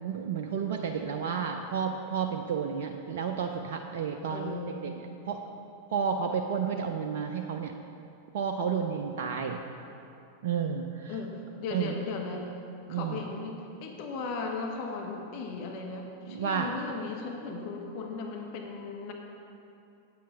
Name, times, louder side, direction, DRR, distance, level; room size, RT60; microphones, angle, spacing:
voice 1, 0.0-4.6 5.3-5.4 5.9-7.7 8.3-9.6 10.4-11.1 11.7-11.9 12.9-13.2 16.3-16.7, right 7 dB, 55° right, 4 dB, 0.4 m, -31 dB
voice 2, 4.3-4.8 11.1-11.3 11.6-12.5 12.9-19.1, left 4 dB, 45° left, 1 dB, 1.0 m, -37 dB
8.5 x 7.4 x 5.5 m, 2.7 s
figure-of-eight pair, 90°, 0 cm